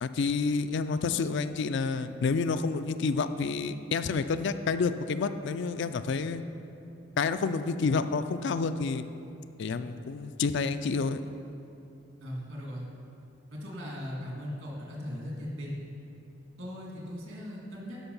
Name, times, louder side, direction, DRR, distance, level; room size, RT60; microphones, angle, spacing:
voice 1, 0.0-6.4 7.2-9.0 9.6-11.3, left 4 dB, 55° left, 11 dB, 0.4 m, -29 dB
voice 2, 12.2-12.9 13.5-15.8 16.6-18.1, equal, 70° right, -3 dB, 2.4 m, -38 dB
11.5 x 5.8 x 5.4 m, 2.7 s
head